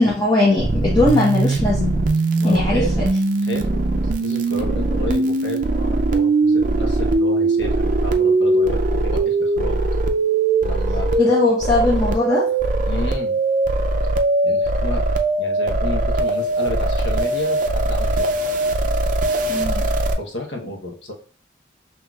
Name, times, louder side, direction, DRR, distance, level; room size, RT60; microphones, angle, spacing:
voice 1, 0.0-2.0 2.4-3.1 11.2-12.5 19.5-19.8, left 2 dB, 20° left, -6 dB, 0.9 m, -19 dB
sound 1, 0.6-20.1, right 2 dB, 45° right, 0.4 m, -20 dB
voice 2, 2.4-2.9 3.4-9.8 10.6-11.2 12.9-13.4 14.4-15.0 15.4-18.3 20.2-21.1, left 1 dB, 90° left, 2 dB, 0.9 m, -31 dB
5.9 x 2.9 x 2.3 m, 0.41 s
head